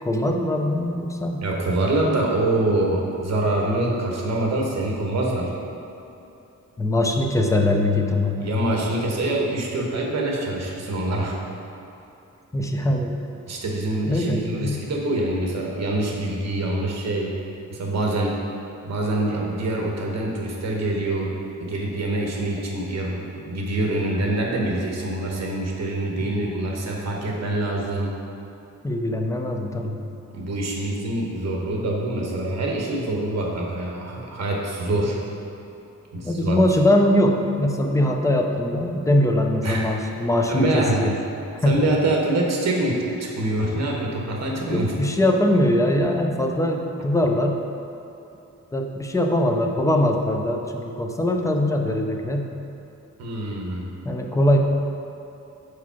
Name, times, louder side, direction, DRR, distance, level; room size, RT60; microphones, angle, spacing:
voice 1, 0.0-1.4 6.8-8.6 12.5-13.1 14.1-14.8 26.2-26.4 28.8-30.0 36.2-41.1 41.6-41.8 44.7-47.6 48.7-52.5 54.0-54.6, left 1 dB, 10° left, 2 dB, 0.4 m, -22 dB
voice 2, 1.4-5.5 8.4-11.4 13.5-17.3 17.7-18.3 18.8-21.3 21.6-28.1 30.3-35.2 36.1-36.6 39.6-39.8 40.5-41.0 41.6-44.9 53.2-53.9, right 1 dB, 60° right, -1 dB, 1.1 m, -25 dB
4.9 x 4.6 x 5.7 m, 2.9 s
wide cardioid pair, 170°, 30 cm